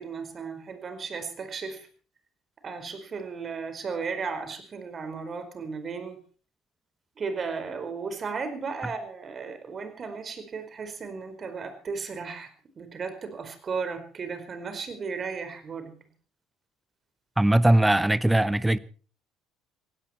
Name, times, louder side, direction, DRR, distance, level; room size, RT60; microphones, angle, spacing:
voice 1, 0.0-1.9 2.6-6.2 7.2-12.5 12.8-15.9, right 5 dB, 40° right, 4.7 m, -35 dB
voice 2, 17.4-18.8, right 1 dB, 10° right, 1.0 m, -20 dB
18.5 x 17.0 x 4.4 m
hypercardioid pair, 60°, 0 cm